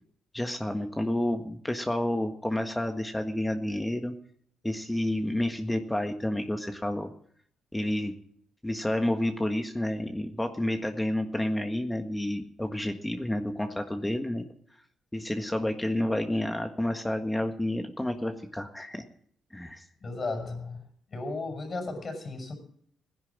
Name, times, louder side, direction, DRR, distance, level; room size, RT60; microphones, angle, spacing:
voice 1, 0.3-4.1 4.6-7.1 7.7-8.1 8.6-14.5 15.1-19.1 19.5-19.8, left 1 dB, 10° left, 5 dB, 1.5 m, -30 dB
voice 2, 20.0-20.8 21.1-22.6, left 3 dB, 40° left, 2 dB, 6.6 m, -35 dB
16.5 x 10.5 x 7.5 m, 0.63 s
cardioid pair, 90°, 0 cm